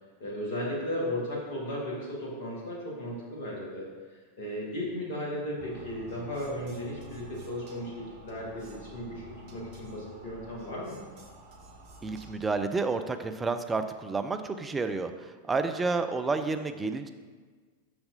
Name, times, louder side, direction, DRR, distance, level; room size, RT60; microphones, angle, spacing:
voice 1, 0.2-11.0, equal, 55° left, -3 dB, 1.8 m, -35 dB
sound 1, 5.6-12.3, equal, 50° right, 0.8 m, -49 dB
voice 2, 12.0-17.1, right 4 dB, 15° right, 9 dB, 0.4 m, -30 dB
6.4 x 5.9 x 2.7 m, 1.5 s
figure-of-eight pair, 90°, 0 cm